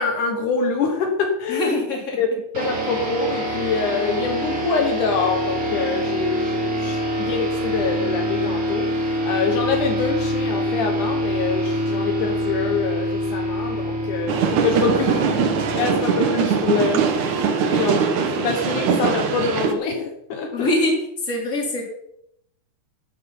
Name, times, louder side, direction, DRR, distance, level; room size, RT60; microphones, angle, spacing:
voice 1, 0.0-1.8 2.1-15.1 15.7-17.1 17.7-20.7, left 5 dB, 70° left, 3 dB, 2.7 m, -25 dB
voice 2, 1.5-2.2 14.7-15.3 20.5-20.9 21.2-21.8, left 1 dB, 25° left, 0 dB, 3.1 m, -24 dB
sound 1, 2.5-17.4, equal, 30° right, 2.5 m, -26 dB
sound 2, 14.3-19.7, right 6 dB, 65° right, 2.6 m, -21 dB
12.0 x 9.4 x 5.5 m, 0.75 s
omnidirectional pair, 3.8 m